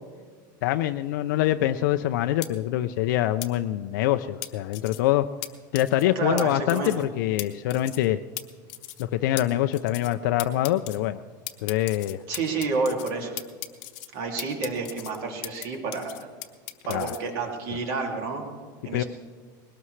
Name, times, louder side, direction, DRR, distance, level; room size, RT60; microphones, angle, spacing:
voice 1, 0.6-5.3 5.7-8.2 9.0-11.2 11.6-12.2 16.9-17.1 18.9-19.0, left 13 dB, 70° left, 8 dB, 0.5 m, -25 dB
sound 1, 2.4-2.5 3.4-3.5 4.4-5.0 5.4-5.5 5.7-6.0 6.4-6.5 6.7-7.0 7.4-7.5 7.7-8.1 8.4-8.5 8.7-9.0 9.4-9.5 9.7-10.1 10.4-11.0 11.5-13.1 13.4-14.1 14.4-15.7 15.9-17.2, left 16 dB, 45° left, 0.9 m, -36 dB
voice 2, 6.1-7.0 12.3-13.4 14.1-16.3 16.8-18.5 18.8-19.0, right 4 dB, 50° right, 1 dB, 2.5 m, -29 dB
20.5 x 18.0 x 3.2 m, 1.5 s
supercardioid pair, 170°, 10 cm